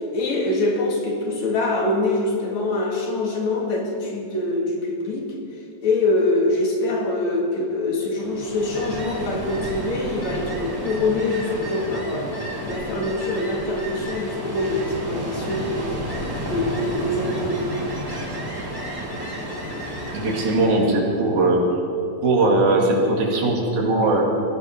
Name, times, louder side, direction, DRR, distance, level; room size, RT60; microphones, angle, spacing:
voice 1, 0.0-5.3 5.8-12.3 12.7-16.0 16.5-17.6, left 2 dB, 70° left, -1 dB, 3.3 m, -24 dB
Ocean, 8.2-20.9, equal, 10° right, 1.9 m, -31 dB
voice 2, 20.1-21.6 22.2-24.2, right 2 dB, 85° right, -2 dB, 3.7 m, -19 dB
22.0 x 15.5 x 3.6 m, 2.7 s
omnidirectional pair, 3.3 m